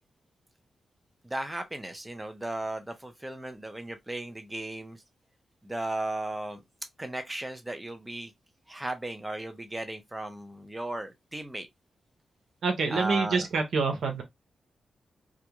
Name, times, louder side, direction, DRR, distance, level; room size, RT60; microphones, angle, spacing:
voice 1, 1.2-5.0 5.6-6.6 7.0-8.3 8.7-11.7 12.9-13.4, right 2 dB, 15° right, 0.6 m, -36 dB
voice 2, 12.6-14.2, right 4 dB, 80° right, 0.8 m, -26 dB
2.4 x 2.1 x 2.9 m
cardioid pair, 65°, 0 cm